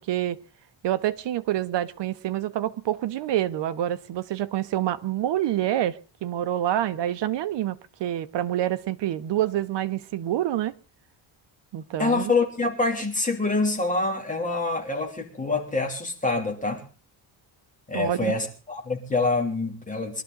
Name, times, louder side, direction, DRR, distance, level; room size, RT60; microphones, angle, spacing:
voice 1, 0.1-0.4 0.8-10.7 11.7-12.3 17.9-18.3, right 12 dB, 60° right, 0.9 m, -27 dB
voice 2, 12.0-16.8 17.9-20.2, left 3 dB, 15° left, 2.9 m, -26 dB
22.5 x 12.5 x 3.9 m
cardioid pair, 180°, 48 cm